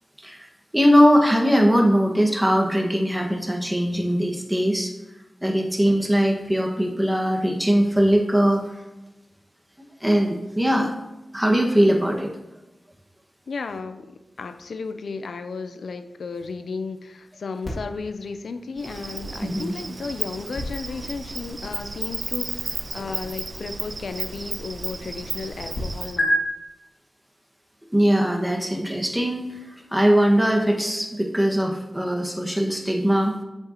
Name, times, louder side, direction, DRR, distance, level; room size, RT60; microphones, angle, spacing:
voice 1, 0.2-4.9 5.4-8.6 10.0-10.9 11.3-12.3 19.4-19.7 27.9-29.6 29.9-33.4, equal, 10° right, 1 dB, 1.5 m, -20 dB
voice 2, 13.5-26.5, left 4 dB, 90° left, 10 dB, 0.5 m, -34 dB
sound 1, 17.6-25.8 26.2-26.3, left 1 dB, 65° left, 1.9 m, -34 dB
Insect, 18.8-26.2, right 3 dB, 60° right, 0.4 m, -34 dB
8.9 x 6.7 x 2.9 m, 1.0 s
cardioid pair, 45°, 0 cm